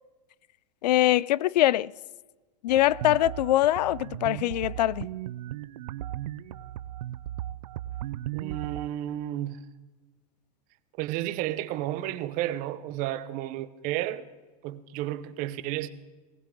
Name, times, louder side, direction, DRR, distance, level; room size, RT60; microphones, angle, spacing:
voice 1, 0.8-1.9 2.6-5.1, left 14 dB, 75° left, 0.4 m, -23 dB
sound 1, 2.7-8.9, right 13 dB, 75° right, 0.6 m, -36 dB
voice 2, 8.3-9.6 11.0-14.3 14.6-15.9, right 14 dB, 40° right, 0.8 m, -32 dB
19.5 x 15.5 x 3.8 m
hypercardioid pair, 130°, 21 cm